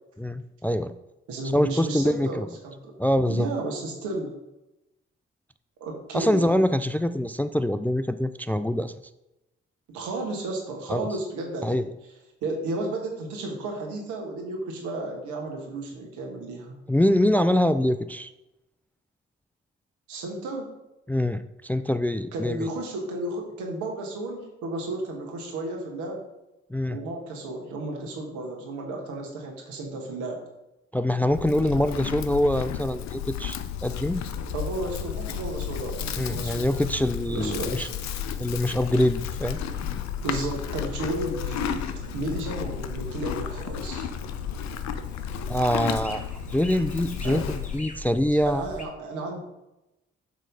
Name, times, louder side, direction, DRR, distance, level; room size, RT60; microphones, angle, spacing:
voice 1, 0.2-0.9 1.5-2.5 3.0-3.5 6.1-8.9 10.9-11.1 11.6-11.8 16.9-18.3 21.1-22.7 26.7-27.0 30.9-34.2 36.2-37.9 38.4-39.6 45.5-46.3 46.5-48.6, left 1 dB, 5° left, 11 dB, 0.3 m, -24 dB
voice 2, 1.3-3.0 3.2-4.3 5.8-6.6 9.9-11.8 12.4-16.8 20.1-20.7 22.3-26.2 26.9-30.4 34.5-36.6 37.3-37.9 40.2-41.8 42.1-44.1 47.2-47.4 48.5-49.4, right 2 dB, 80° right, 0 dB, 1.4 m, -33 dB
Livestock farm animals working animals, 31.3-47.8, left 9 dB, 70° left, 0.6 m, -33 dB
sound 1, 34.1-48.9, left 1 dB, 25° left, 1.5 m, -42 dB
7.6 x 3.2 x 5.3 m, 0.93 s
hypercardioid pair, 40°, 29 cm